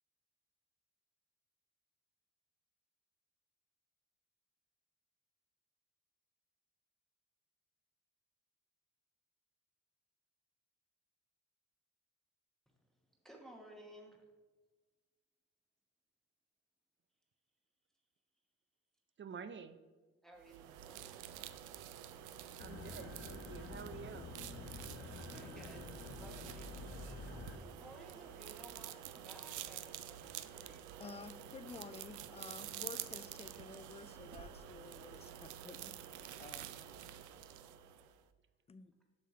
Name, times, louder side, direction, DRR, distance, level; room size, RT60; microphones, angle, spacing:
voice 1, 13.2-14.2 20.2-21.2 25.1-31.2, right 1 dB, ahead, 1 dB, 1.0 m, -58 dB
voice 2, 19.2-19.8 22.6-24.3 28.1-28.2, right 6 dB, 40° right, 11 dB, 0.5 m, -49 dB
sound 1, 20.4-38.2, right 11 dB, 90° right, 0.5 m, -49 dB
sound 2, 22.6-27.6, left 3 dB, 45° left, 1.2 m, -49 dB
voice 3, 31.0-35.9 36.4-36.7 38.7-38.9, left 5 dB, 20° left, 14 dB, 0.4 m, -52 dB
7.4 x 6.0 x 4.2 m, 1.3 s
cardioid pair, 90°, 30 cm